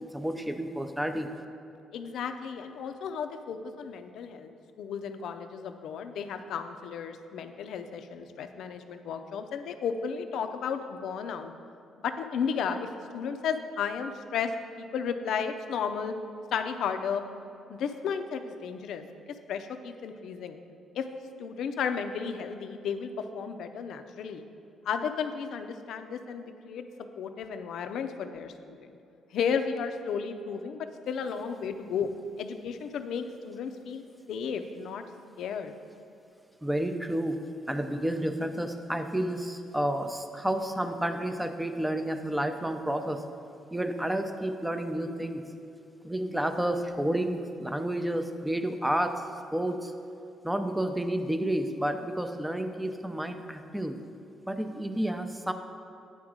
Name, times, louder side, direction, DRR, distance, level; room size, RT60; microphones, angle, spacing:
voice 1, 0.1-1.3 36.6-37.4 37.7-43.2 43.7-45.4 46.0-49.1 49.5-49.9 50.4-54.0 54.5-55.5, right 1 dB, 5° right, 7 dB, 0.5 m, -30 dB
voice 2, 1.9-4.5 4.8-11.5 12.0-12.9 13.1-14.5 14.8-16.1 16.5-17.2 17.7-19.0 19.5-20.6 20.9-21.1 21.4-24.4 24.8-26.8 27.2-28.9 29.3-32.1 32.4-34.0 34.3-35.0 35.4-35.7, left 6 dB, 75° left, 8 dB, 0.5 m, -33 dB
9.3 x 3.7 x 6.2 m, 2.6 s
cardioid pair, 90°, 0 cm